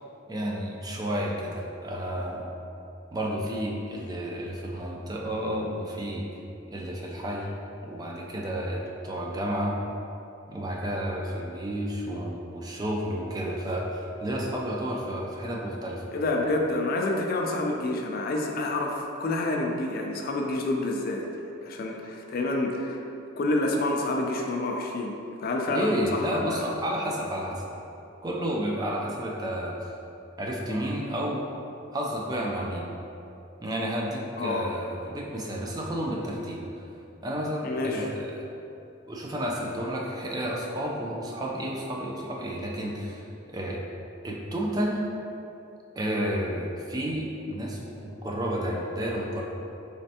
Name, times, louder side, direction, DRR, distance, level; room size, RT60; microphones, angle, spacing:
voice 1, 0.3-2.4 3.1-6.2 6.7-7.5 7.8-9.7 10.5-16.0 25.7-27.6 28.2-29.9 30.4-31.4 31.9-32.9 33.6-36.6 37.2-38.4 39.1-43.2 43.5-43.8 44.2-45.0 46.0-49.4, equal, 20° right, -1 dB, 0.4 m, -31 dB
voice 2, 16.1-21.3 21.6-23.0 23.4-26.6 34.4-34.7 37.6-38.1, left 2 dB, 50° left, 1 dB, 0.4 m, -28 dB
4.2 x 3.2 x 2.8 m, 2.8 s
head